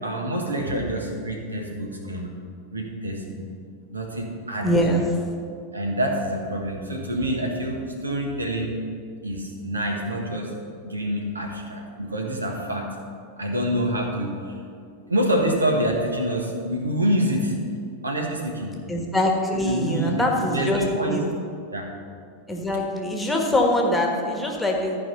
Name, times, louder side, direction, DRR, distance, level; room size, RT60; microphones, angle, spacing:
voice 1, 0.0-2.3 2.7-3.5 3.9-5.1 5.7-8.7 9.2-10.5 10.8-12.9 13.4-14.6 15.1-17.5 18.0-18.8 19.5-21.2 21.7-21.9, right 1 dB, 80° right, 1 dB, 1.4 m, -26 dB
voice 2, 4.6-5.0 18.9-21.3 22.5-25.0, left 1 dB, 5° left, 0 dB, 1.4 m, -23 dB
13.5 x 4.9 x 5.5 m, 2.3 s
figure-of-eight pair, 90°, 0 cm